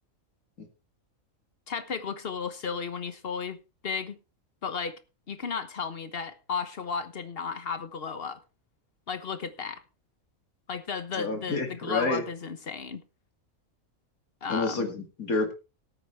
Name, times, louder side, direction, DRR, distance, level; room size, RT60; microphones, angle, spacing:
voice 1, 1.7-3.6 3.8-4.2 4.6-5.0 5.3-8.4 9.1-9.8 10.7-13.0 14.4-14.9, left 5 dB, 45° left, 1.3 m, -34 dB
voice 2, 11.1-12.2 14.5-15.5, left 3 dB, 80° left, 2.7 m, -29 dB
18.5 x 8.8 x 3.3 m
omnidirectional pair, 1.5 m